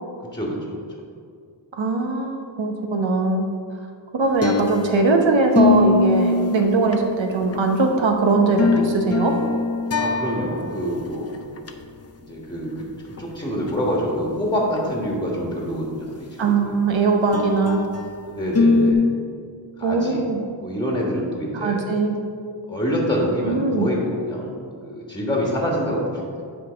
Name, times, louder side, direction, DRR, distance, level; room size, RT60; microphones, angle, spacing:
voice 1, 1.7-3.5 4.1-9.4 16.4-17.9 19.8-20.4 21.5-22.2 23.5-23.9, right 3 dB, 75° right, 3 dB, 1.1 m, -20 dB
sound 1, 4.2-5.1 5.6-7.7 8.3-10.8 11.1-11.2 11.6-11.7 13.2-13.3 13.7-13.8 17.3-18.1 18.6-18.9, left 3 dB, 35° left, 0.5 m, -22 dB
voice 2, 9.9-11.3 12.2-12.9 13.2-16.7 18.3-19.0 19.8-20.2 20.6-21.8 22.7-24.5 24.8-26.4, equal, 10° left, -2 dB, 1.5 m, -26 dB
9.2 x 3.9 x 5.2 m, 2.2 s
wide cardioid pair, 110°, 47 cm